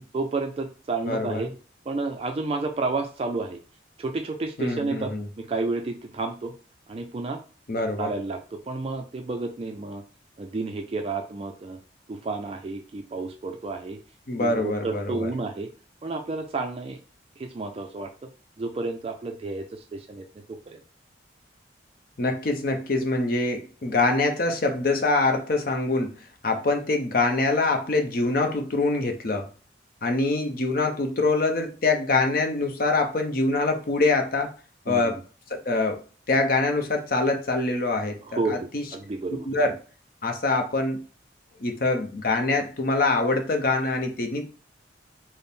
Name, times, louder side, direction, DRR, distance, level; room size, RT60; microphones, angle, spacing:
voice 1, 0.1-1.5 1.9-3.6 4.0-5.1 5.4-6.5 6.9-7.4 8.0-10.0 10.4-11.8 12.1-14.0 14.4-15.7 16.0-17.0 17.4-18.3 18.6-20.8 34.9-35.2 38.2-39.5, right 3 dB, 30° right, 0.3 m, -31 dB
voice 2, 1.1-1.5 4.6-5.3 7.7-8.1 14.3-15.3 22.2-26.2 26.4-29.5 30.0-34.5 34.9-35.2 35.5-36.0 36.3-38.2 38.5-38.8 39.4-39.7 40.2-41.0 41.6-44.5, left 3 dB, 50° left, 0.6 m, -24 dB
3.5 x 2.0 x 4.1 m
head